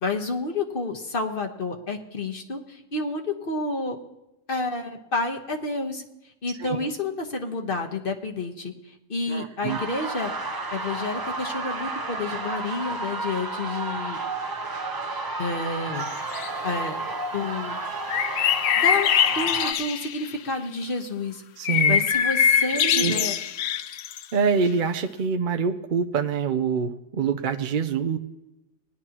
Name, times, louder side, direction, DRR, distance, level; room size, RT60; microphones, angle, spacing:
voice 1, 0.0-4.0 4.5-6.0 6.4-10.3 10.7-14.2 15.4-16.1 16.4-17.0 17.3-17.8 18.8-21.4 21.9-23.4, left 3 dB, 50° left, 3 dB, 1.3 m, -30 dB
voice 2, 9.3-9.8 21.6-22.0 22.8-23.3 24.3-28.2, right 6 dB, 50° right, 6 dB, 0.7 m, -25 dB
sound 1, 9.7-19.7, right 3 dB, 20° right, 0.8 m, -32 dB
sound 2, 16.0-16.5 18.1-20.3 21.6-24.2, left 9 dB, 70° left, 0.8 m, -23 dB
19.5 x 11.0 x 2.9 m, 0.93 s
omnidirectional pair, 1.2 m